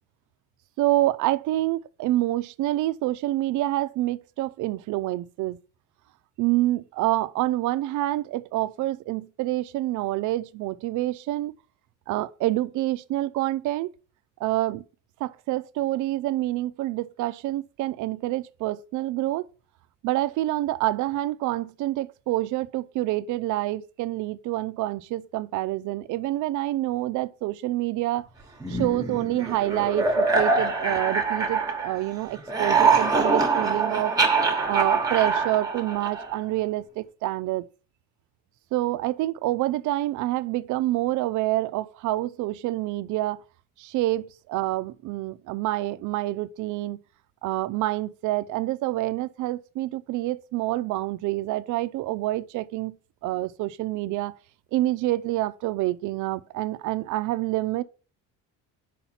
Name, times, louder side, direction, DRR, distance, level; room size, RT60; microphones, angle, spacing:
voice 1, 0.8-5.6 6.4-11.5 12.1-13.9 14.4-14.8 15.2-19.5 20.0-28.3 28.7-34.2 34.6-37.7 38.7-43.4 43.8-47.0 47.4-52.9 53.2-54.3 54.7-57.8, right 16 dB, 55° right, 0.5 m, -27 dB
sound 1, 28.6-32.1 32.4-36.4, right 4 dB, 10° right, 1.0 m, -24 dB
5.6 x 5.0 x 5.7 m
cardioid pair, 160°, 36 cm